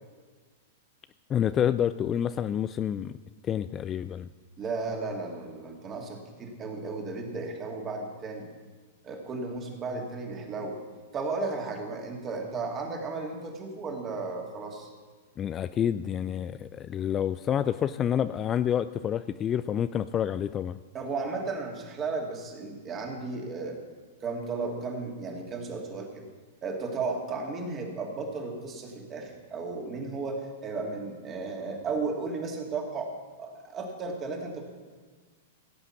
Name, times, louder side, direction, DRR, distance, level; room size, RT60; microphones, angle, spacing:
voice 1, 1.3-3.1 3.4-4.3 15.4-20.8, left 9 dB, 25° left, 13 dB, 0.3 m, -28 dB
voice 2, 4.6-8.5 9.0-10.8 11.1-14.9 20.9-23.8 24.2-26.2 26.6-33.1 33.4-34.6, right 3 dB, 25° right, 1 dB, 2.5 m, -34 dB
16.5 x 8.1 x 5.9 m, 1.4 s
figure-of-eight pair, 100°, 0 cm